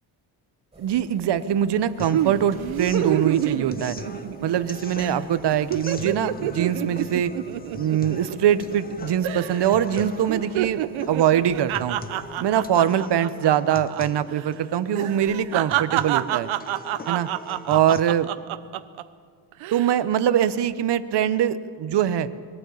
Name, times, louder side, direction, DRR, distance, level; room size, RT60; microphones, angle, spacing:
sound 1, 0.7-12.7, right 2 dB, 15° right, 4.5 m, -48 dB
voice 1, 0.8-4.0 4.4-7.3 7.7-10.8 11.1-12.0 12.4-16.5 17.1-17.3 17.7-18.3 19.7-22.3, right 10 dB, 60° right, 13 dB, 0.9 m, -23 dB
sound 2, 2.0-18.0, left 4 dB, 20° left, 0.9 m, -41 dB
sound 3, 2.1-4.7 5.0-5.2 5.5-8.9 9.2-9.7 10.0-14.0 14.3-14.5 14.9-19.0 19.5-19.9, right 13 dB, 85° right, 0.8 m, -28 dB
22.0 x 14.5 x 8.4 m, 2.1 s
cardioid pair, 135°, 47 cm